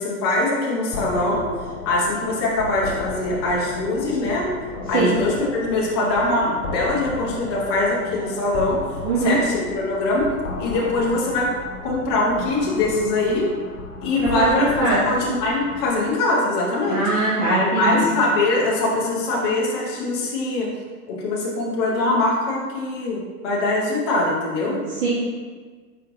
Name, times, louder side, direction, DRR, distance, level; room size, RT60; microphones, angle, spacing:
voice 1, 0.0-1.4 1.9-4.5 4.9-8.8 9.2-10.3 10.6-11.5 11.8-13.5 14.0-17.1 17.5-20.7 21.1-24.8, left 2 dB, 20° left, -4 dB, 0.4 m, -22 dB
sound 1, 0.9-16.2, left 3 dB, 55° left, 0.7 m, -34 dB
voice 2, 9.0-9.4 14.2-15.0 16.9-18.1 25.0-25.1, right 2 dB, 55° right, -7 dB, 1.1 m, -21 dB
4.8 x 4.4 x 2.5 m, 1.5 s
hypercardioid pair, 145°, 47 cm